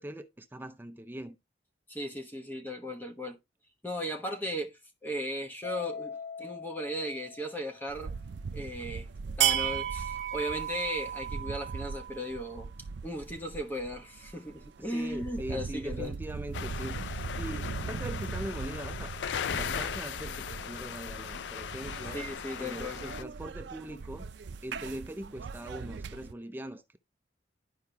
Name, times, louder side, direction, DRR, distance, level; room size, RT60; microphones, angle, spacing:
voice 1, 0.0-1.4 14.8-19.1 19.5-22.2 22.6-24.3 24.6-27.0, right 1 dB, 10° right, 0.5 m, -41 dB
voice 2, 1.9-3.4 3.8-8.1 8.5-9.1 9.4-12.7 13.0-16.1 22.1-23.0, equal, 10° left, 1.1 m, -36 dB
Mallet percussion, 5.6-8.1, left 5 dB, 55° left, 1.6 m, -42 dB
sound 1, 7.9-26.3, right 7 dB, 70° right, 0.4 m, -37 dB
sound 2, 16.5-23.2, left 8 dB, 75° left, 0.4 m, -38 dB
11.5 x 4.8 x 2.8 m
head